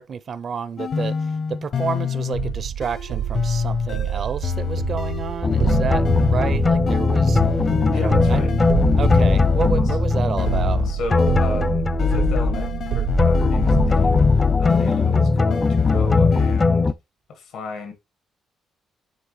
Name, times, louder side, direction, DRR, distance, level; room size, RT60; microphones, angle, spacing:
voice 1, 0.0-7.4 7.9-8.4 9.0-10.9, right 6 dB, 50° right, 0.6 m, -30 dB
sound 1, 0.8-10.0 10.4-11.7 12.0-16.7, left 6 dB, 60° left, 0.9 m, -25 dB
sound 2, 2.3-13.9, right 10 dB, 80° right, 0.8 m, -27 dB
sound 3, 5.4-12.9 13.2-16.9, left 3 dB, 25° left, 0.4 m, -20 dB
voice 2, 7.9-8.5 9.7-10.0 10.8-14.3 14.6-16.9 17.3-17.9, left 3 dB, 85° left, 1.8 m, -33 dB
9.6 x 3.7 x 3.2 m
cardioid pair, 90°, 0 cm